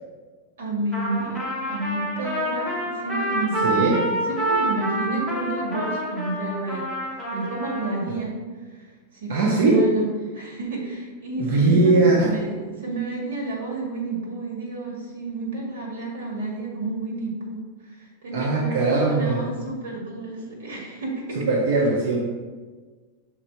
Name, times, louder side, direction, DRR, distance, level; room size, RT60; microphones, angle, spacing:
voice 1, 0.6-1.4 1.6-6.8 7.3-8.3 8.7-21.4, right 2 dB, 90° right, -1 dB, 2.0 m, -30 dB
Trumpet, 0.9-8.0, right 1 dB, 10° right, 1.3 m, -27 dB
voice 2, 3.6-4.0 9.3-9.9 11.4-12.3 18.3-19.4 21.3-22.2, right 3 dB, 55° right, -3 dB, 1.0 m, -20 dB
5.9 x 4.0 x 4.6 m, 1.4 s
supercardioid pair, 175°, 0 cm